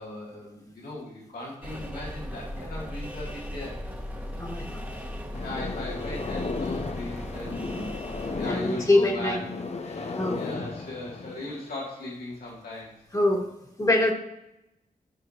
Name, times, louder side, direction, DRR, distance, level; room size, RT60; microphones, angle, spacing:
voice 1, 0.0-3.8 4.7-7.9 8.3-9.4 9.8-12.9, left 1 dB, 75° left, -5 dB, 2.6 m, -38 dB
sound 1, 1.6-8.5, left 1 dB, 10° right, 1.5 m, -37 dB
voice 2, 4.4-4.8 8.5-9.4 10.1-10.4 13.1-13.4 13.8-14.1, left 2 dB, 20° left, 1 dB, 1.9 m, -23 dB
sound 2, 5.3-11.7, left 3 dB, 45° left, 0.8 m, -35 dB
13.0 x 5.0 x 2.9 m, 0.89 s
cardioid pair, 55°, 16 cm